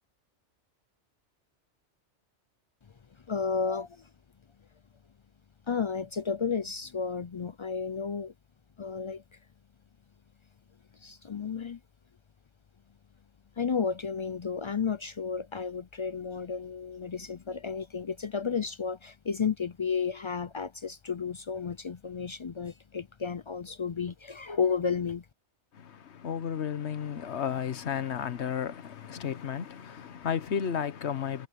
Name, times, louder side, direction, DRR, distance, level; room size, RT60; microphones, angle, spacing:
voice 1, 3.3-4.1 5.7-8.3 8.8-9.2 11.0-11.8 13.6-25.2, left 6 dB, 50° left, 0.3 m, -32 dB
voice 2, 25.7-31.5, left 8 dB, 70° left, 1.2 m, -33 dB
omnidirectional pair, 1.2 m